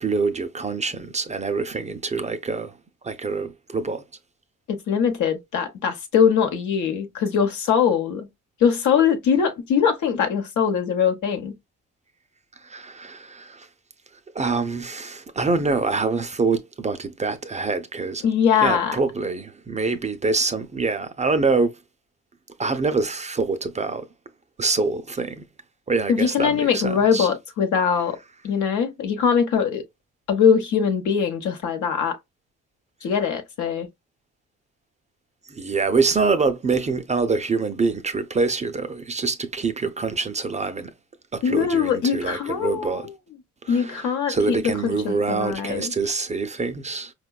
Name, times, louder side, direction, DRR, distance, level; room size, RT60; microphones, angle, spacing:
voice 1, 0.0-2.7 3.0-4.0 12.6-13.7 14.3-18.3 18.6-21.8 22.6-24.1 24.6-25.5 25.9-27.3 35.5-40.9 41.3-43.1 43.6-47.1, right 4 dB, 25° right, 0.4 m, -25 dB
voice 2, 4.7-8.3 8.6-11.6 18.2-19.0 26.1-28.2 28.4-29.8 30.3-32.2 33.0-33.9 41.4-43.1 43.7-45.9, left 7 dB, 75° left, 0.8 m, -22 dB
4.7 x 2.1 x 2.2 m
cardioid pair, 90°, 30 cm